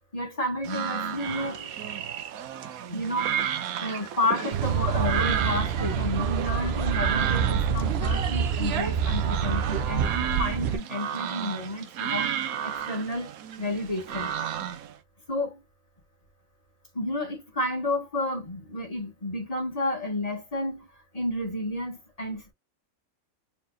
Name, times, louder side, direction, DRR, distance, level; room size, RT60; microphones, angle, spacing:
voice 1, 0.1-1.8 2.9-12.3 12.6-13.3 13.6-14.3 15.3-15.6 16.9-20.9 21.1-22.5, left 1 dB, 25° left, 1.5 m, -31 dB
sound 1, 0.6-14.9, right 9 dB, 75° right, 1.2 m, -33 dB
sound 2, 4.5-10.8, right 7 dB, 60° right, 0.7 m, -27 dB
4.4 x 3.3 x 2.3 m
omnidirectional pair, 1.5 m